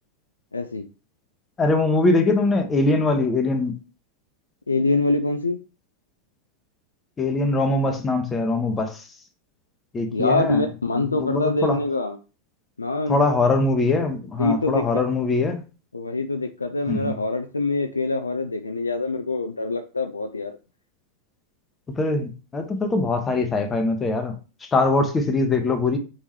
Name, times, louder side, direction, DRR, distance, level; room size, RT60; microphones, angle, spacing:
voice 1, 0.5-0.9 4.7-5.6 10.1-12.2 12.8-13.2 14.4-14.8 15.9-20.5, left 2 dB, 80° left, 7 dB, 0.3 m, -24 dB
voice 2, 1.6-3.7 7.2-9.0 9.9-10.6 10.9-11.8 13.1-15.6 16.9-17.1 22.0-24.3 24.6-26.0, left 3 dB, 15° left, 6 dB, 0.9 m, -22 dB
4.1 x 3.6 x 3.1 m, 0.34 s
figure-of-eight pair, 90°, 0 cm